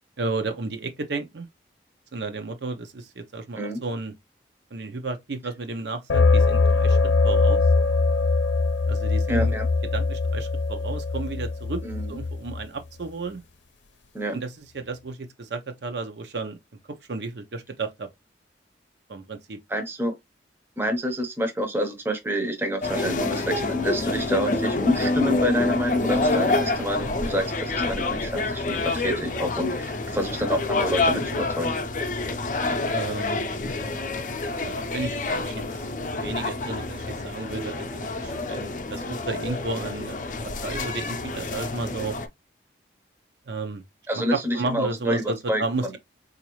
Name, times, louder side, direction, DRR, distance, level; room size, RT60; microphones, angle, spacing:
voice 1, 0.2-1.5 2.1-4.1 4.7-7.0 7.2-7.6 8.9-9.5 9.9-11.8 12.1-13.4 14.3-16.6 17.1-18.1 19.1-19.6 32.9-33.5 34.6-40.2 40.6-42.1 43.5-43.8 44.1-46.0, right 3 dB, 70° right, 0.6 m, -33 dB
sound 1, 6.1-12.6, left 3 dB, 85° left, 0.6 m, -22 dB
voice 2, 9.3-9.7 11.8-12.1 14.1-14.4 19.7-20.2 20.8-31.8 44.1-45.6, equal, 10° right, 0.6 m, -27 dB
sound 2, 22.8-42.3, left 2 dB, 45° left, 0.5 m, -27 dB
4.0 x 2.5 x 2.9 m
head